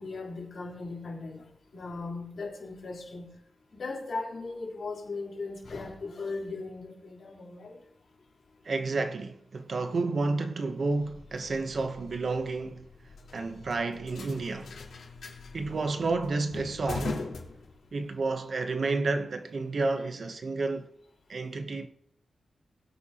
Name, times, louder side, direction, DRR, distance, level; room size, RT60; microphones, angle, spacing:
voice 1, 0.0-1.4 1.7-3.3 3.8-7.7, left 3 dB, 55° left, 3.7 m, -38 dB
voice 2, 8.6-12.9 13.3-14.7 15.5-17.3 17.9-20.9 21.3-21.9, right 3 dB, 45° right, 0.8 m, -30 dB
sound 1, 10.9-18.2, left 3 dB, 85° left, 3.7 m, -42 dB
22.0 x 8.6 x 2.9 m
wide cardioid pair, 135°, 0 cm